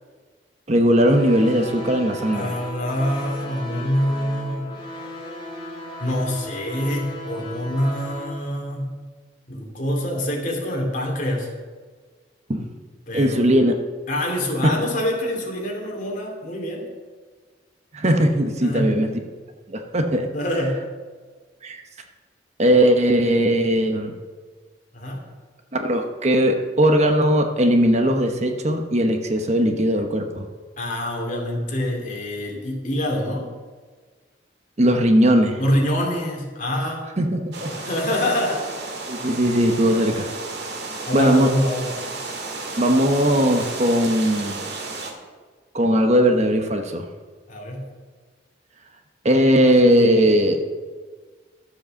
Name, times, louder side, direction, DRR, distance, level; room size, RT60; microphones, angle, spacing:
voice 1, 0.7-2.6 12.5-12.7 13.1-13.7 14.6-14.8 17.9-19.1 19.7-20.3 21.6-21.8 22.6-24.2 25.7-30.5 34.8-35.6 37.2-37.7 39.1-40.3 41.1-41.5 42.8-44.7 45.7-47.0 49.2-50.7, equal, 40° right, 5 dB, 1.0 m, -19 dB
sound 1, 1.0-8.3, left 1 dB, 30° left, 2.4 m, -36 dB
voice 2, 2.3-4.8 6.0-8.9 9.5-11.5 13.1-13.6 14.1-16.8 18.6-18.9 20.3-20.8 24.9-25.2 30.8-33.5 35.6-37.1 37.8-38.7 41.0-41.9 47.5-47.9, equal, 45° left, -1 dB, 2.8 m, -25 dB
sound 2, 37.5-45.1, right 3 dB, 65° right, 2.0 m, -33 dB
12.5 x 7.6 x 6.9 m, 1.5 s
head